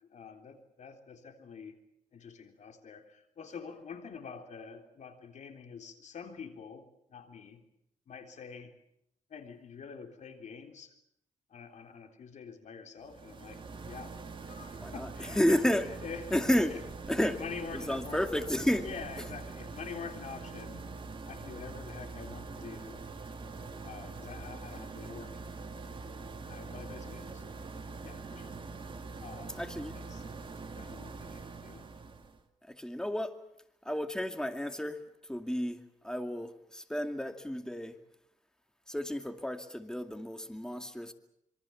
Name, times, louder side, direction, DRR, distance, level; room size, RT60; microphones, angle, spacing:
voice 1, 0.0-1.7 2.1-7.6 8.1-8.8 9.3-10.9 11.5-16.8 17.2-18.2 18.8-20.9 21.2-23.0 23.8-25.4 26.5-27.4 28.0-28.6 29.2-29.6 29.9-30.2 30.8-31.9, left 6 dB, 60° left, 3.8 m, -46 dB
sound 1, 13.0-32.4, right 4 dB, 40° right, 2.5 m, -44 dB
voice 2, 14.8-15.9 16.3-16.7 17.1-17.4 17.7-18.9 29.5-29.9 32.6-33.3 33.8-35.0 35.3-38.0 38.9-41.1, left 1 dB, 5° left, 2.3 m, -31 dB
26.5 x 23.5 x 7.2 m
cardioid pair, 95°, 14 cm